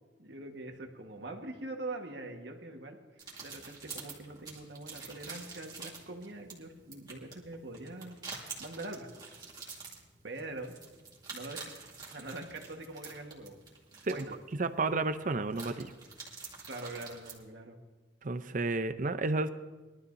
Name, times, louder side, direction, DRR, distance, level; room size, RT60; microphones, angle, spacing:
voice 1, 0.2-3.0 3.4-9.1 10.2-10.7 11.3-11.7 12.1-13.6 14.0-14.4 16.7-17.8, right 2 dB, 70° right, 3 dB, 1.5 m, -43 dB
sound 1, 3.2-17.4, right 4 dB, 25° right, 2.3 m, -48 dB
voice 2, 14.6-15.9 18.2-19.5, right 3 dB, 45° right, 11 dB, 0.6 m, -31 dB
22.0 x 12.5 x 2.7 m, 1.2 s
head